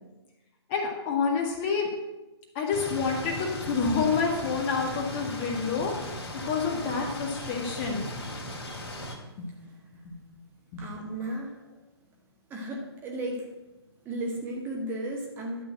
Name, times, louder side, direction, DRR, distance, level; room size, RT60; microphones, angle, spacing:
voice 1, 0.7-1.9 2.6-6.2 6.4-8.0 9.4-9.5 10.0-10.1 10.7-11.1, left 5 dB, 25° left, 1 dB, 1.8 m, -28 dB
sound 1, 2.7-9.2, left 1 dB, 60° left, 3.1 m, -37 dB
voice 2, 10.8-11.5 12.5-13.4 14.0-15.6, right 1 dB, 15° right, -2 dB, 1.6 m, -34 dB
12.0 x 4.3 x 7.8 m, 1.0 s
figure-of-eight pair, 135°, 14 cm